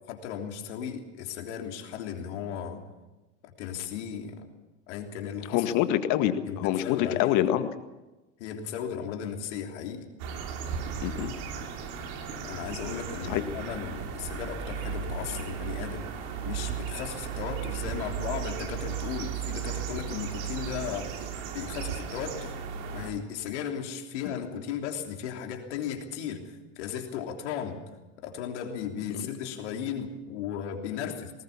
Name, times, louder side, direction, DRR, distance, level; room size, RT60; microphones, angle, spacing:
voice 1, 0.1-2.8 3.4-4.5 4.9-5.7 6.2-7.4 8.4-10.1 12.4-16.1 16.4-21.2 21.5-22.6 22.9-31.3, left 8 dB, 70° left, 3 dB, 3.3 m, -36 dB
voice 2, 5.5-7.7 11.0-11.4 13.3-13.4 31.0-31.1, left 13 dB, 55° left, 9 dB, 1.8 m, -26 dB
sound 1, 10.2-23.1, right 7 dB, 60° right, 3.2 m, -35 dB
20.0 x 19.0 x 7.3 m, 1.1 s
hypercardioid pair, 100°, 36 cm